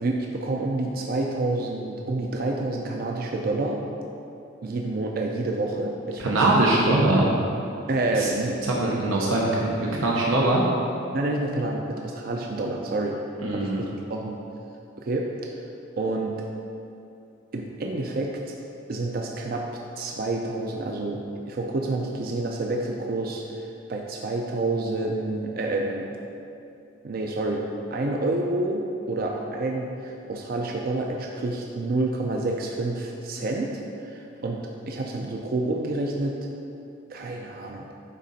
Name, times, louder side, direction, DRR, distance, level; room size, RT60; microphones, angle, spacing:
voice 1, 0.0-3.8 4.6-6.6 7.9-8.6 11.1-13.2 13.5-14.4 15.0-15.3 16.0-16.4 17.5-18.5 18.9-19.7 20.0-26.1 27.0-27.6 27.9-34.6 34.9-36.4 37.1-37.9, right 2 dB, 50° right, 1 dB, 0.4 m, -28 dB
voice 2, 6.2-7.2 8.2-8.3 8.7-10.6 13.4-13.8, right 2 dB, 90° right, -3 dB, 0.8 m, -22 dB
9.2 x 3.7 x 4.1 m, 2.7 s
head